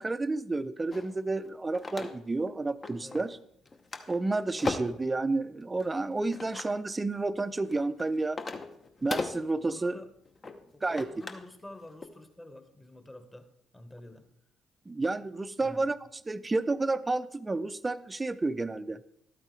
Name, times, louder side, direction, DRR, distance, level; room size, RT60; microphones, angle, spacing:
voice 1, 0.0-3.4 4.1-8.4 9.0-10.0 10.8-11.1 14.9-16.0 16.3-19.0, right 3 dB, 25° right, 14 dB, 0.5 m, -30 dB
sound 1, 0.9-2.5 2.8-3.4 3.6-5.1 5.8-6.8 7.4-11.5 11.8-12.1, left 3 dB, 35° left, 0.9 m, -38 dB
voice 2, 9.6-10.1 10.7-13.5 13.7-14.3 15.6-15.9, left 1 dB, 15° left, 8 dB, 1.3 m, -48 dB
12.0 x 8.7 x 3.3 m, 0.70 s
hypercardioid pair, 45°, 0 cm